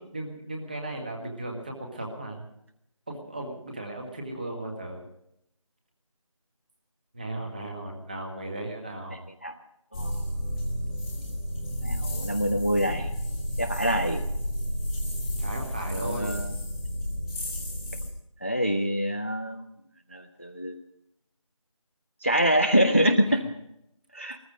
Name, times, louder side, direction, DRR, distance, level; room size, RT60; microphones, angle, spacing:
voice 1, 0.1-2.5 3.1-5.0 7.1-9.3 15.3-16.5, right 1 dB, 15° right, 2 dB, 1.6 m, -36 dB
sound 1, 9.9-18.1, equal, 10° left, 1.5 m, -31 dB
voice 2, 11.8-13.1 13.6-14.2 15.9-16.5 18.4-19.7 20.1-20.8 22.2-23.4 24.1-24.4, equal, 25° left, 7 dB, 0.5 m, -25 dB
19.0 x 14.5 x 5.1 m, 0.77 s
figure-of-eight pair, 170°, 18 cm